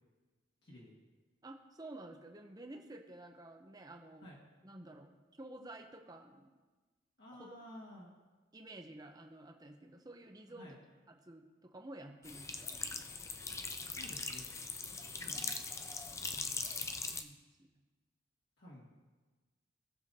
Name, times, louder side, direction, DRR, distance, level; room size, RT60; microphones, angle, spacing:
voice 1, 0.6-0.9 4.2-4.4 7.2-8.1 10.5-10.8 13.9-14.5 15.2-15.6 18.6-18.9, left 1 dB, 55° left, -6 dB, 1.9 m, -52 dB
voice 2, 1.4-4.2 4.6-5.1 5.4-6.5 7.3-7.6 8.5-10.7 11.1-13.1 14.9-15.4 16.1-16.8 17.1-17.7, right 1 dB, 20° right, 4 dB, 0.7 m, -52 dB
sound 1, 12.2-17.2, left 4 dB, 15° left, 0.3 m, -41 dB
18.5 x 7.0 x 2.8 m, 1.3 s
head